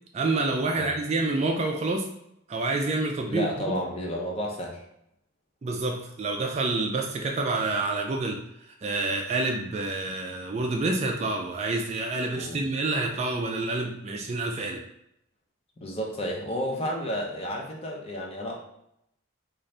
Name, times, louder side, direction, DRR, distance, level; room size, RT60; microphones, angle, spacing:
voice 1, 0.1-2.1 2.5-3.8 5.6-14.8, right 2 dB, 30° right, 1 dB, 0.3 m, -28 dB
voice 2, 3.3-4.8 12.3-12.6 15.8-18.5, equal, 30° left, 0 dB, 0.6 m, -31 dB
3.9 x 2.4 x 3.2 m, 0.78 s
head